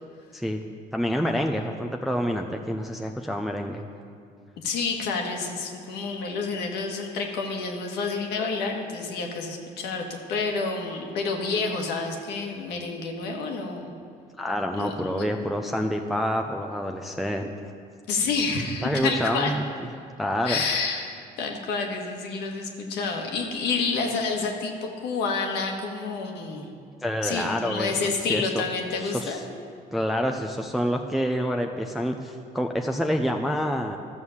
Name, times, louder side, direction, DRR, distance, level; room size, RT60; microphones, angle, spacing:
voice 1, 0.9-3.8 14.4-17.7 18.8-19.6 20.2-20.6 27.0-27.9 28.3-28.6 29.0-29.4 29.9-34.0, equal, ahead, 2 dB, 0.5 m, -27 dB
voice 2, 4.6-13.9 14.7-15.3 18.1-19.5 20.4-21.1 21.4-26.7 27.2-29.4, left 4 dB, 85° left, 2 dB, 1.6 m, -29 dB
13.0 x 6.4 x 7.2 m, 2.3 s
cardioid pair, 110°, 17 cm